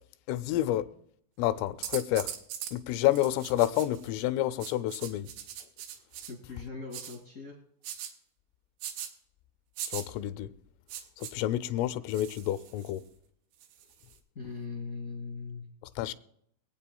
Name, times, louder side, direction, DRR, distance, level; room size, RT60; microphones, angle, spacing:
voice 1, 0.3-0.9 1.4-2.3 2.7-5.3 9.9-10.5 11.2-13.0 16.0-16.1, left 13 dB, 90° left, 3.2 m, -29 dB
sound 1, 1.8-2.8 3.1-4.1 4.6-6.3 6.9-7.2 7.8-8.1 8.8-9.1 9.8-10.1 10.9-11.3 12.1-13.0 13.6-14.2, right 10 dB, 80° right, 3.3 m, -40 dB
voice 2, 6.3-7.6 14.3-15.7, left 4 dB, 55° left, 0.9 m, -40 dB
24.5 x 8.6 x 2.3 m
omnidirectional pair, 5.6 m